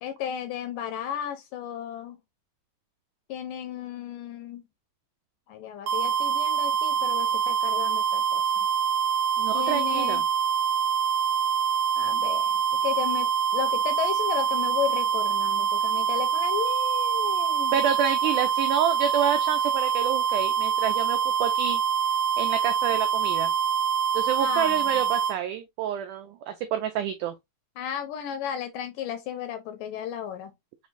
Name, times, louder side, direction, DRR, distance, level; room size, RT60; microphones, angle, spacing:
voice 1, 0.0-2.2 3.3-4.6 5.5-8.4 9.5-10.2 12.0-13.3 13.5-17.7 24.4-25.0 27.8-30.5, left 9 dB, 75° left, 2.1 m, -34 dB
sound 1, 5.9-25.4, right 7 dB, 70° right, 2.3 m, -25 dB
voice 2, 9.4-10.2 17.7-21.8 22.4-23.5 24.1-27.3, right 9 dB, 90° right, 1.7 m, -28 dB
6.4 x 3.1 x 2.5 m
omnidirectional pair, 4.3 m